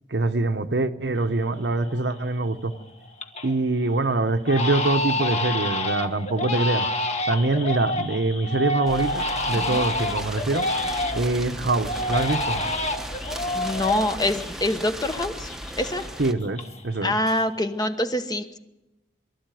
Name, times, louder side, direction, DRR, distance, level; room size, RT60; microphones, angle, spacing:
voice 1, 0.1-2.8 3.4-6.9 7.3-10.7 11.1-12.6 16.2-17.1, right 2 dB, 70° right, 1.0 m, -24 dB
Crying sobbing, 1.3-1.4 1.9-2.3 2.7-3.6 3.9-4.0 4.5-11.4 11.9-15.2 15.5-17.0 17.2-17.8, left 1 dB, 40° left, 1.6 m, -28 dB
sound 1, 8.9-16.3, right 1 dB, ahead, 1.0 m, -36 dB
voice 2, 13.3-15.5 15.8-16.1 17.0-18.6, left 1 dB, 20° left, 1.1 m, -25 dB
23.5 x 13.5 x 9.2 m
head